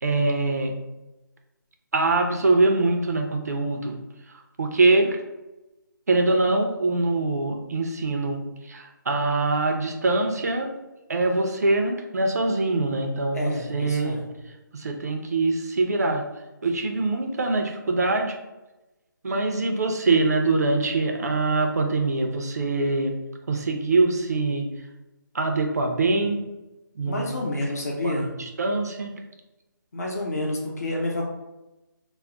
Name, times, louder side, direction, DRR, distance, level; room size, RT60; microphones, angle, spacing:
voice 1, 0.0-0.7 1.9-4.0 4.6-5.2 6.1-8.4 8.7-10.7 11.1-14.2 14.7-16.2 16.6-18.4 19.2-23.1 23.5-24.7 25.3-26.4 27.0-27.4 28.0-28.1 28.4-29.1, right 3 dB, 50° right, 3 dB, 0.4 m, -23 dB
voice 2, 13.3-14.2 26.0-26.1 27.0-28.3 29.9-31.3, left 1 dB, 50° left, -1 dB, 0.7 m, -29 dB
2.3 x 2.0 x 3.7 m, 1.0 s
figure-of-eight pair, 170°, 11 cm